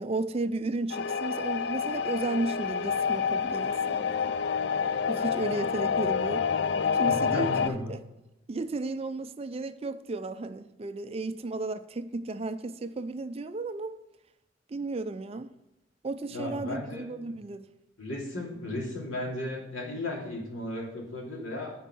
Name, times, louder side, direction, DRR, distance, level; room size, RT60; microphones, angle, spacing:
voice 1, 0.0-4.3 5.1-6.5 6.9-8.0 8.5-14.0 14.7-15.5 16.0-17.7, right 2 dB, 30° right, 0.4 m, -34 dB
sound 1, 0.9-7.7, left 6 dB, 55° left, 0.4 m, -28 dB
voice 2, 7.1-7.9 16.3-17.4 18.0-21.7, left 1 dB, 90° left, 2.7 m, -35 dB
9.2 x 4.6 x 6.0 m
head